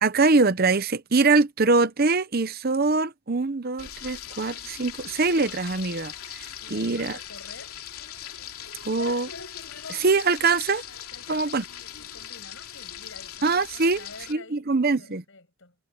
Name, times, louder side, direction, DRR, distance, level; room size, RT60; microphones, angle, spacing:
voice 1, 0.0-6.5 6.7-7.2 8.9-9.3 9.9-10.8 11.3-11.6 13.4-14.0 14.3-15.2, right 3 dB, 45° right, 0.8 m, -23 dB
Frying (food), 3.8-14.3, left 10 dB, 80° left, 3.0 m, -40 dB
voice 2, 6.6-7.8 11.1-14.7 15.0-15.8, left 3 dB, 60° left, 6.5 m, -48 dB
head